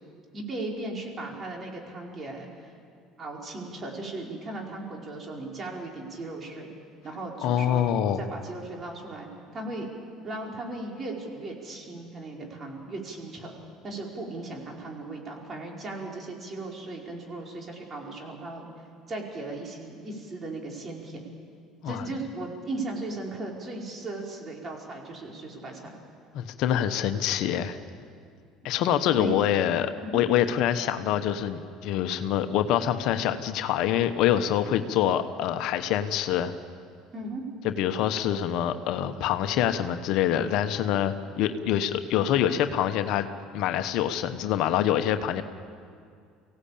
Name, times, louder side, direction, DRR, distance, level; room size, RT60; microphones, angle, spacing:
voice 1, 0.3-2.7 3.2-6.7 7.0-9.3 9.5-9.9 10.2-13.5 13.8-18.7 19.1-21.3 21.9-26.0 29.1-29.4 30.0-30.2 37.1-37.4, right 2 dB, 35° right, -1 dB, 5.0 m, -37 dB
voice 2, 7.4-8.2 21.8-22.0 26.3-27.8 28.6-36.5 37.6-43.3 43.5-45.4, left 10 dB, 65° left, 9 dB, 1.1 m, -25 dB
24.5 x 16.5 x 8.7 m, 2.3 s
supercardioid pair, 80°, 0 cm